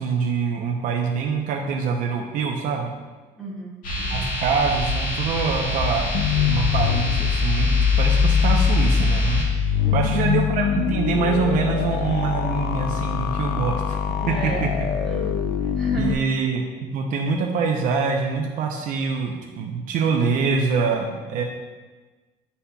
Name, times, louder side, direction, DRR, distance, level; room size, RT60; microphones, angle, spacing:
voice 1, 0.0-2.9 4.1-6.1 6.4-14.0 14.3-14.9 16.0-21.4, right 5 dB, 60° right, 1 dB, 0.6 m, -25 dB
voice 2, 3.4-4.3 9.8-10.3 14.2-14.7 15.0-16.2, right 2 dB, ahead, -8 dB, 1.6 m, -34 dB
sound 1, 3.8-9.4, left 1 dB, 55° left, 1.6 m, -26 dB
sound 2, 6.1-16.1, left 7 dB, 70° left, 0.4 m, -23 dB
9.9 x 4.2 x 2.3 m, 1.3 s
cardioid pair, 165°, 16 cm